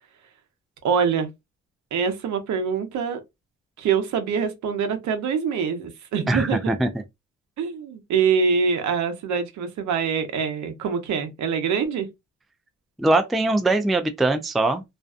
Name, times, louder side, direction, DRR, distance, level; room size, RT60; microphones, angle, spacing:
voice 1, 0.8-1.3 1.9-3.2 3.8-6.6 7.6-12.1, right 6 dB, 70° right, 0.7 m, -24 dB
voice 2, 6.3-6.9 13.0-14.8, right 2 dB, ahead, 0.3 m, -21 dB
2.5 x 2.2 x 2.4 m
cardioid pair, 90°, 30 cm